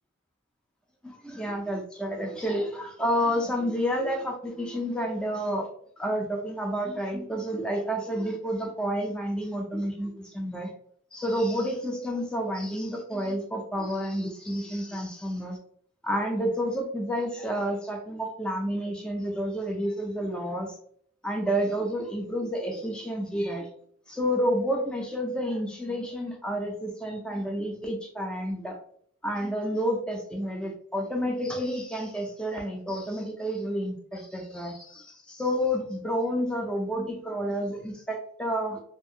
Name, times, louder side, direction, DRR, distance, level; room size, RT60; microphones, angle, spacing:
voice 1, 1.0-5.7 6.0-10.7 11.1-15.6 16.0-20.8 21.2-23.7 24.1-28.8 29.2-38.8, equal, 5° left, 1 dB, 0.3 m, -30 dB
2.6 x 2.4 x 2.7 m, 0.64 s
head